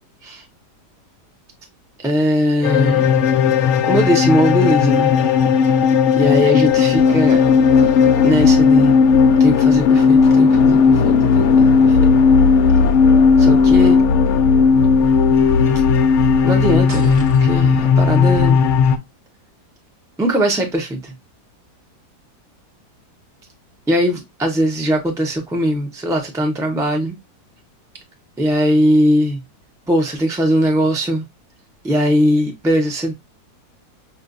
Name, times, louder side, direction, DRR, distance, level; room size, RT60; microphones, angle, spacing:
voice 1, 2.0-3.1 3.8-5.2 6.2-7.4 8.2-9.0 9.4-12.0 13.4-14.0 16.4-18.6 20.2-21.1 23.9-27.2 28.4-29.4 29.9-31.2 31.8-33.1, equal, 5° right, 0.4 m, -19 dB
sound 1, 2.6-19.0, left 5 dB, 75° left, 0.7 m, -14 dB
sound 2, 16.9-17.8, right 1 dB, 25° right, 0.8 m, -37 dB
5.3 x 2.5 x 2.5 m
omnidirectional pair, 1.8 m